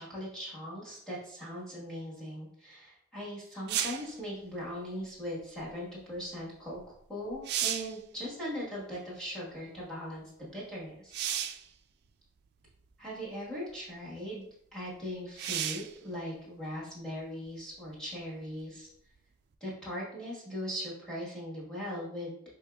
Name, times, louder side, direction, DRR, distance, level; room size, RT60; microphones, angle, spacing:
voice 1, 0.0-6.8 7.1-11.2 13.0-18.9 19.6-22.3, equal, 5° left, -7 dB, 1.4 m, -39 dB
sound 1, 3.7-4.1 6.8-6.9 7.3-8.0 11.1-11.7 12.7-12.8 15.4-15.9 19.5-19.6, right 10 dB, 55° right, 0.3 m, -33 dB
5.5 x 2.8 x 2.3 m, 0.73 s
head